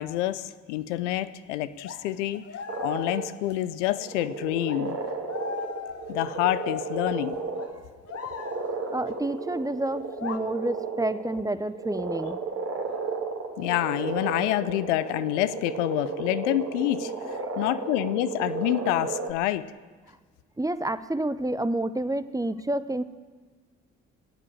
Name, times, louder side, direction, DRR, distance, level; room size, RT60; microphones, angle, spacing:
voice 1, 0.0-2.4 2.8-5.0 6.1-7.4 13.6-17.1 17.6-19.7, left 14 dB, 85° left, 14 dB, 0.5 m, -27 dB
sound 1, 1.2-1.3 1.8-4.1 4.6-8.9 10.0-10.4, left 6 dB, 45° left, 1.5 m, -39 dB
sound 2, 2.7-3.3 3.9-7.8 8.1-19.3, right 4 dB, 50° right, 2.5 m, -34 dB
voice 2, 8.9-12.4 20.6-23.0, right 1 dB, 10° right, 14 dB, 0.8 m, -29 dB
20.0 x 8.5 x 7.4 m, 1.5 s
hypercardioid pair, 45°, 35 cm